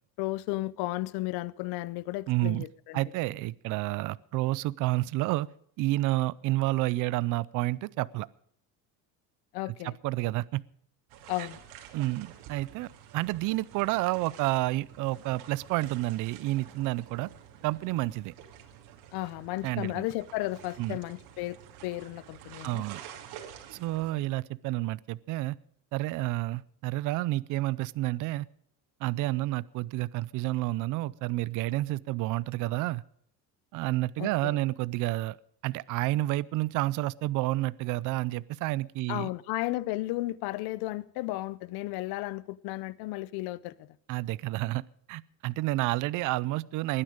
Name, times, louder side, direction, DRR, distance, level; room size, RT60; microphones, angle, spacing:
voice 1, 0.2-3.0 9.5-10.0 11.3-11.6 19.1-21.6 21.8-22.8 34.2-34.5 39.1-43.9, left 18 dB, 75° left, 0.8 m, -34 dB
voice 2, 2.3-2.7 2.9-5.5 5.8-8.3 9.7-10.6 11.4-11.5 11.9-17.3 17.6-18.3 19.6-20.1 20.8-21.0 22.6-23.0 23.7-25.6 25.9-28.5 29.0-33.0 33.7-35.4 35.6-39.3 44.1-44.8 45.1-47.0, right 18 dB, 55° right, 0.5 m, -30 dB
sound 1, 11.1-24.1, right 10 dB, 80° right, 2.6 m, -49 dB
20.5 x 10.0 x 5.0 m
cardioid pair, 145°, 38 cm